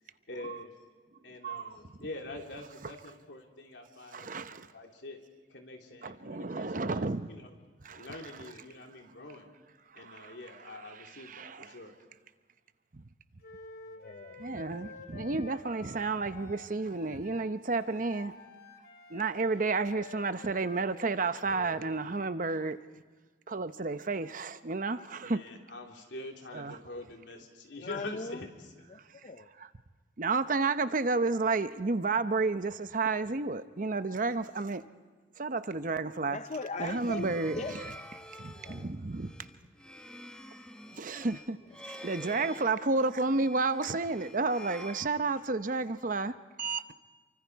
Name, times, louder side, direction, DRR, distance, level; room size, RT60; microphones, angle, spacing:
voice 1, 0.3-0.7 1.2-5.2 5.5-7.5 7.9-9.5 9.9-12.0 15.0-15.1 25.2-28.7, left 2 dB, 90° left, 3.1 m, -45 dB
voice 2, 4.1-4.7 6.0-7.3 7.8-8.1 9.9-10.3 11.3-11.6 12.9-13.0 14.4-18.3 19.1-22.8 23.5-25.4 26.5-26.8 29.6-29.7 30.2-34.8 35.4-36.4 36.8-37.9 38.4-39.3 40.9-41.6 41.8-46.9, right 3 dB, 50° right, 0.8 m, -31 dB
Wind instrument woodwind instrument, 13.4-22.0, left 3 dB, 60° left, 2.4 m, -50 dB
voice 3, 13.9-14.4 27.8-28.5 28.9-29.5 36.3-37.3 37.6-37.8 38.6-38.9, left 3 dB, 40° left, 0.6 m, -39 dB
sound 1, 36.7-45.7, equal, 5° left, 1.2 m, -48 dB
28.5 x 24.5 x 4.7 m
head